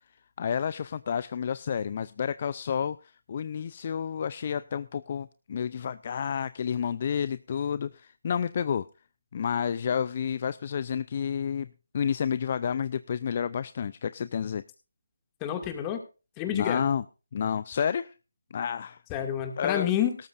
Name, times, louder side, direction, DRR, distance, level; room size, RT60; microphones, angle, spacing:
voice 1, 0.4-8.9 9.3-14.6 16.5-17.0 17.3-18.1 18.5-19.0 19.6-19.9, left 7 dB, 40° left, 15 dB, 0.5 m, -30 dB
voice 2, 15.4-16.0 16.4-16.8 19.1-20.2, left 10 dB, 15° left, 5 dB, 2.3 m, -29 dB
18.5 x 13.0 x 2.6 m, 0.32 s
figure-of-eight pair, 155°, 0 cm